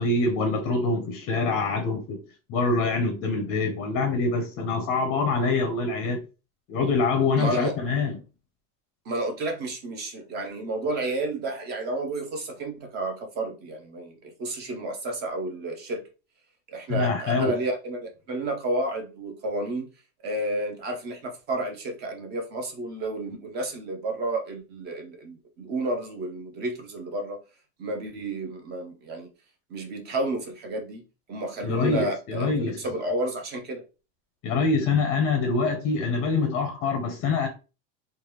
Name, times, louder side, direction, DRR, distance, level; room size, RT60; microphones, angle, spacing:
voice 1, 0.0-2.2 2.5-6.2 6.7-8.2 16.9-17.6 31.6-32.8 34.4-37.5, left 3 dB, 35° left, 0.5 m, -25 dB
voice 2, 7.4-7.7 9.1-16.1 16.7-19.9 20.2-27.4 27.8-29.3 29.7-33.8, right 2 dB, 25° right, 0.5 m, -31 dB
3.2 x 2.2 x 2.9 m
supercardioid pair, 155°, 42 cm